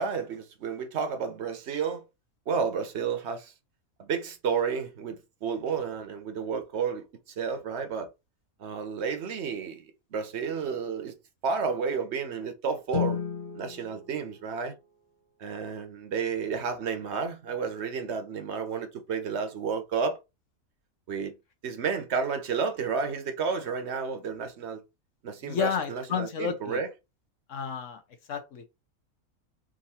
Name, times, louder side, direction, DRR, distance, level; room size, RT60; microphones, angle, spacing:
voice 1, 0.0-2.0 2.5-3.5 4.0-7.1 7.4-8.1 8.6-11.2 11.4-13.2 13.5-14.7 15.4-20.2 21.1-21.3 21.6-24.8 25.2-26.9, right 5 dB, 55° right, 1.0 m, -31 dB
Guitar, 12.9-15.5, left 9 dB, 40° left, 0.9 m, -35 dB
voice 2, 25.4-26.8 27.5-28.0 28.3-28.8, left 7 dB, 65° left, 1.1 m, -31 dB
3.6 x 2.7 x 4.2 m
omnidirectional pair, 1.5 m